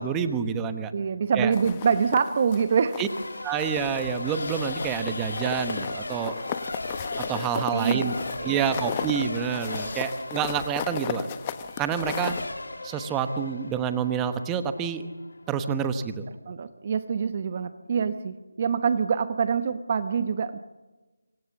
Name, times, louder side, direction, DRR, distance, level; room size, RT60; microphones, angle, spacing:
voice 1, 0.0-0.9 1.4-1.5 3.0-3.1 3.4-6.3 7.2-8.1 8.4-11.3 11.8-12.3 12.8-15.1 15.5-16.2, right 7 dB, 10° right, 9 dB, 1.1 m, -28 dB
voice 2, 0.9-3.0 7.5-8.1 8.4-8.7 16.4-20.6, right 6 dB, 35° right, 11 dB, 0.9 m, -25 dB
sound 1, 1.5-3.3 3.6-4.2 4.5-12.5, left 9 dB, 20° left, 1.0 m, -36 dB
Race car auto racing / Accelerating revving vroom / Mechanisms, 3.1-15.6, left 2 dB, 80° left, 2.9 m, -37 dB
sound 2, 4.2-6.0 7.0-7.5 9.7-10.2, left 3 dB, 50° left, 5.0 m, -42 dB
25.5 x 25.0 x 7.2 m, 1.2 s
figure-of-eight pair, 165°, 0 cm